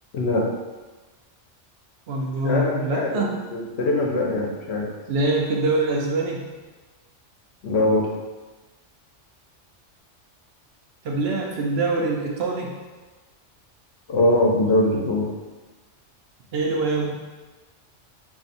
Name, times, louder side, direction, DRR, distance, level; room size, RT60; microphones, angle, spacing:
voice 1, 0.1-0.5 2.4-4.9 7.6-8.1 14.1-15.3, left 1 dB, 65° left, -2 dB, 0.9 m, -22 dB
voice 2, 2.1-3.4 5.1-6.5 11.0-12.7 16.5-17.2, right 2 dB, 65° right, -1 dB, 0.8 m, -24 dB
5.3 x 2.7 x 2.5 m, 1.3 s
omnidirectional pair, 1.2 m